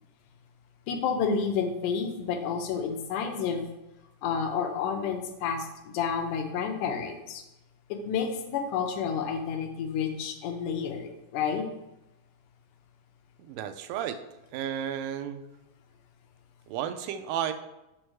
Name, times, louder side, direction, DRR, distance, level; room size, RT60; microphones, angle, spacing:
voice 1, 0.9-3.7 4.2-7.4 7.9-11.7, left 6 dB, 90° left, 5 dB, 2.3 m, -30 dB
voice 2, 13.4-14.2 14.5-15.4 16.7-17.5, right 10 dB, 85° right, 9 dB, 2.1 m, -32 dB
6.4 x 6.3 x 3.1 m, 0.94 s
omnidirectional pair, 3.7 m